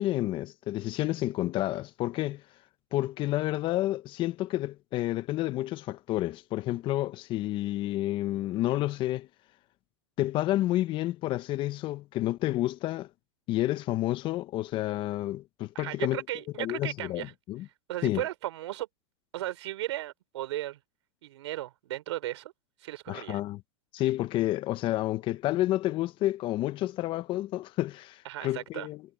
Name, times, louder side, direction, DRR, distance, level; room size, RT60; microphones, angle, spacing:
voice 1, 0.0-2.4 2.9-9.3 10.2-13.1 13.5-16.2 16.6-17.7 18.0-18.2 23.1-23.6 23.9-29.0, left 15 dB, 35° left, 0.9 m, -30 dB
voice 2, 15.7-17.3 17.9-18.9 19.3-20.8 21.2-22.5 22.8-23.4 28.3-28.9, right 15 dB, 75° right, 3.8 m, -35 dB
supercardioid pair, 135°, 15 cm